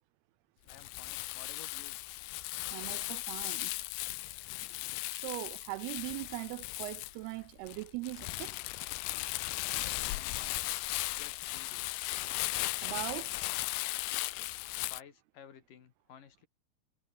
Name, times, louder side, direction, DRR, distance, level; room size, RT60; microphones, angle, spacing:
voice 1, 0.6-2.0 9.7-10.6 11.1-11.9 14.3-16.5, left 8 dB, 55° left, 3.7 m, -55 dB
Crumpling crinkling, 0.7-15.0, left 20 dB, 80° left, 2.8 m, -37 dB
voice 2, 2.7-3.7 5.1-8.6 12.8-13.5, right 21 dB, 85° right, 2.3 m, -40 dB
omnidirectional pair, 4.8 m